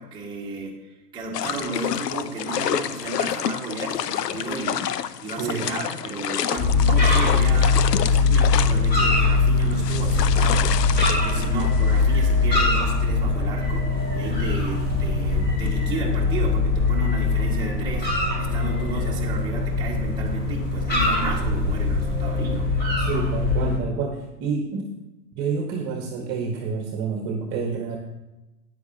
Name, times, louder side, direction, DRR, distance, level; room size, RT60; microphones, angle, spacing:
voice 1, 0.0-4.9 5.2-7.8 8.1-10.7 11.1-22.7, right 2 dB, 10° right, -5 dB, 1.6 m, -33 dB
sound 1, 1.3-12.5, left 10 dB, 70° left, 0.7 m, -29 dB
voice 2, 5.4-5.7 23.1-24.9 25.3-28.0, right 5 dB, 35° right, 3 dB, 1.3 m, -28 dB
Ijmuiden Harbour, 6.6-23.8, left 3 dB, 20° left, 3.4 m, -21 dB
13.0 x 9.6 x 2.8 m, 1.0 s
hypercardioid pair, 110°, 50 cm